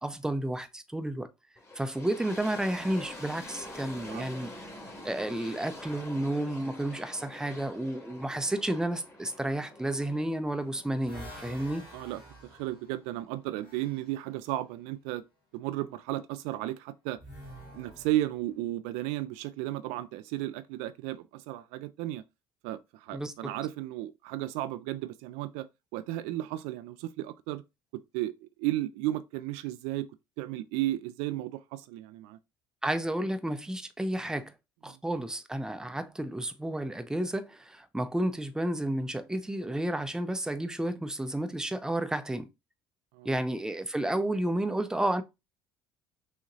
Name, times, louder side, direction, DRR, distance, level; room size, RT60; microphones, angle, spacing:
voice 1, 0.0-1.3 1.7-4.5 5.0-11.9 23.1-23.6 32.8-34.5 34.8-42.5 43.2-45.2, right 1 dB, 5° right, 0.6 m, -31 dB
sound 1, 1.6-12.5, left 1 dB, 20° left, 1.8 m, -46 dB
sound 2, 10.3-14.2 17.2-18.6, right 1 dB, 80° left, 1.9 m, -49 dB
voice 2, 11.9-15.2 15.5-17.2 17.7-22.2 22.6-25.7 25.9-27.6 27.9-30.1 30.4-32.4 43.1-43.4, right 15 dB, 60° right, 0.4 m, -34 dB
6.3 x 2.8 x 2.6 m
figure-of-eight pair, 55°, 12 cm